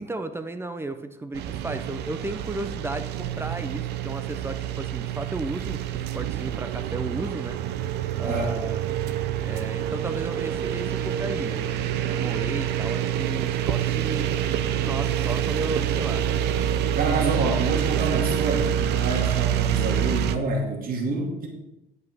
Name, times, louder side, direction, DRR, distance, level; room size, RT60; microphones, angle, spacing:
voice 1, 0.0-7.9 8.2-8.8 9.4-14.3 14.8-16.3, right 2 dB, 15° right, 9 dB, 0.8 m, -34 dB
Construction Site, 1.3-20.4, right 10 dB, 80° right, 0.7 m, -27 dB
voice 2, 8.2-8.6 16.9-21.5, right 3 dB, 60° right, -1 dB, 2.6 m, -27 dB
9.2 x 5.6 x 6.2 m, 0.91 s
cardioid pair, 110°, 17 cm